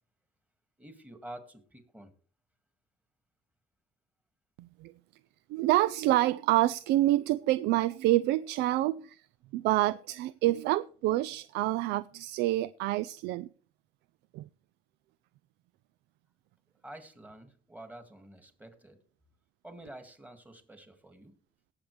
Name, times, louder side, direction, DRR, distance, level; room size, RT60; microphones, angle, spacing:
voice 1, 0.8-2.1 16.8-19.0 19.6-21.3, right 1 dB, 10° right, 2.1 m, -48 dB
voice 2, 4.6-4.9 5.5-9.2 9.5-13.5 14.3-14.5, right 16 dB, 85° right, 0.4 m, -27 dB
18.5 x 7.3 x 3.3 m
cardioid pair, 110°, 17 cm